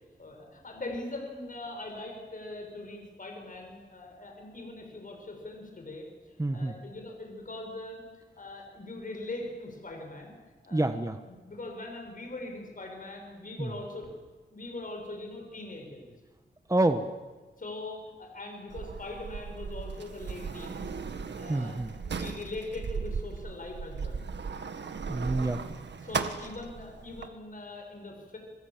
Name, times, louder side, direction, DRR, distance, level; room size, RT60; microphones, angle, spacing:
voice 1, 0.2-8.0 8.4-10.3 10.6-10.9 11.3-14.1 14.5-16.1 17.6-21.0 21.3-24.2 25.9-28.4, left 2 dB, 50° left, 2 dB, 6.3 m, -41 dB
voice 2, 6.4-6.7 10.7-11.1 13.6-13.7 16.7-17.0 21.5-21.9 25.1-25.6, right 2 dB, 20° right, 7 dB, 1.4 m, -27 dB
Sliding door, 18.7-27.3, right 5 dB, 75° right, 1.8 m, -37 dB
28.5 x 24.5 x 7.6 m, 1.3 s
wide cardioid pair, 90°, 18 cm